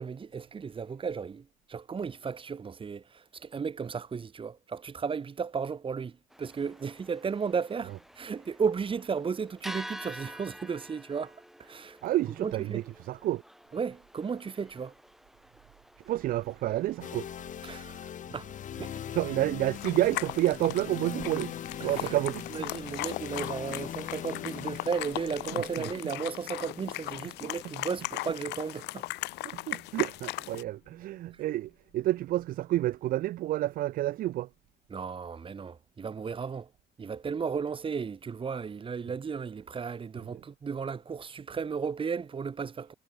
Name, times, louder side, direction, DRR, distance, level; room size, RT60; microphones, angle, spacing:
voice 1, 0.0-12.0 12.4-12.8 13.7-14.9 17.6-18.5 18.8-18.9 21.8-22.1 22.5-29.1 31.3-31.4 34.9-36.7 37.0-42.9, right 6 dB, 30° right, 1.9 m, -34 dB
sound 1, 6.3-17.3, equal, ahead, 1.0 m, -48 dB
voice 2, 12.0-13.4 16.1-17.3 19.1-21.6 21.8-22.5 25.5-25.6 29.5-34.5, right 15 dB, 60° right, 0.4 m, -29 dB
sound 2, 17.0-30.9, left 10 dB, 50° left, 1.1 m, -42 dB
sound 3, 19.7-30.6, left 20 dB, 90° left, 1.1 m, -38 dB
cardioid pair, 110°, 17 cm